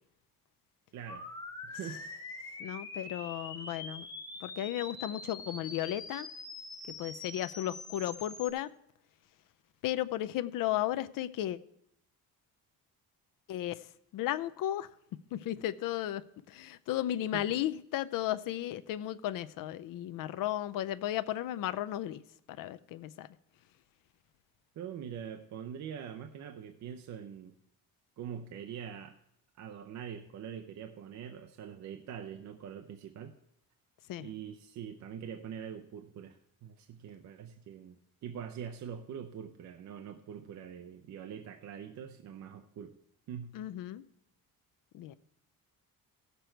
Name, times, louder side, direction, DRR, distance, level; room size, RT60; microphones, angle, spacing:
voice 1, 0.9-1.3 1.6-2.0 17.3-17.4 24.8-27.5 28.2-29.1 29.6-33.3 34.2-43.0 43.3-43.5, right 8 dB, 50° right, 0.6 m, -44 dB
sound 1, 1.1-8.5, left 3 dB, 10° left, 1.1 m, -44 dB
voice 2, 2.6-4.1 4.4-6.3 7.0-8.7 9.8-11.6 13.5-13.9 14.1-14.9 15.3-22.2 22.5-23.3 34.1-34.3 43.5-44.0 44.9-45.1, left 13 dB, 65° left, 0.6 m, -34 dB
16.5 x 6.8 x 4.5 m
cardioid pair, 175°, 36 cm